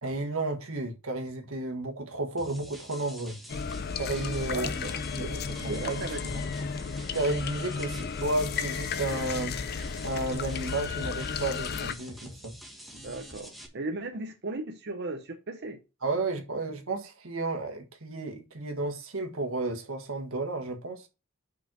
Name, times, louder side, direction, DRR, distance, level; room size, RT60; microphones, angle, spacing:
voice 1, 0.0-3.4 4.0-4.9 5.1-5.3 5.6-6.3 7.1-9.8 10.0-12.5 16.0-21.1, right 2 dB, 85° right, 1.6 m, -32 dB
sound 1, 2.4-13.7, equal, ahead, 1.5 m, -47 dB
sound 2, 3.5-11.9, left 5 dB, 50° left, 0.5 m, -33 dB
voice 2, 4.5-5.0 5.3-6.4 12.9-15.8, right 2 dB, 55° right, 0.8 m, -37 dB
5.5 x 5.2 x 6.1 m
head